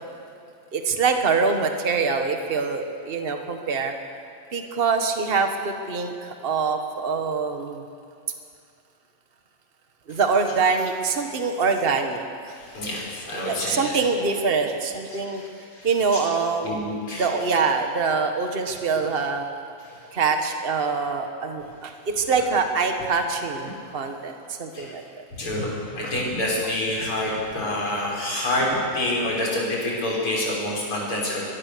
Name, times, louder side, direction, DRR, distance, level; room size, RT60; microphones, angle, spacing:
voice 1, 0.7-3.9 4.5-7.8 10.1-12.5 13.3-15.4 15.8-16.8 17.1-19.5 20.1-25.0, right 4 dB, 55° right, 5 dB, 0.6 m, -24 dB
voice 2, 12.5-14.0 15.1-15.9 16.6-17.3 19.0-19.1 19.8-20.0 24.7-24.9 25.4-31.4, left 1 dB, 40° left, -3 dB, 6.3 m, -27 dB
24.0 x 21.5 x 6.9 m, 2.4 s
omnidirectional pair, 3.7 m